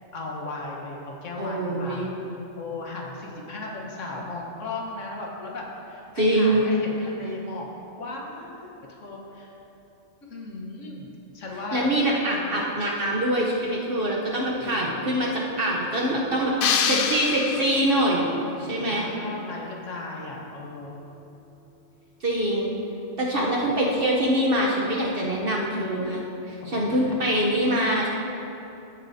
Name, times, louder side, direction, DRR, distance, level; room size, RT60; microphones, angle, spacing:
voice 1, 0.1-2.1 2.6-7.7 8.0-9.5 10.2-11.1 11.3-11.9 14.6-15.1 18.4-21.0 26.6-27.2, left 2 dB, 80° left, -1 dB, 1.6 m, -36 dB
voice 2, 1.4-2.1 6.2-6.7 11.7-16.5 16.8-18.3 18.6-19.1 22.2-22.8 23.2-26.2 26.5-28.1, right 1 dB, 50° right, -3 dB, 1.1 m, -24 dB
sound 1, 16.6-18.1, left 7 dB, 60° left, 0.6 m, -25 dB
15.0 x 7.7 x 2.7 m, 2.9 s
omnidirectional pair, 1.3 m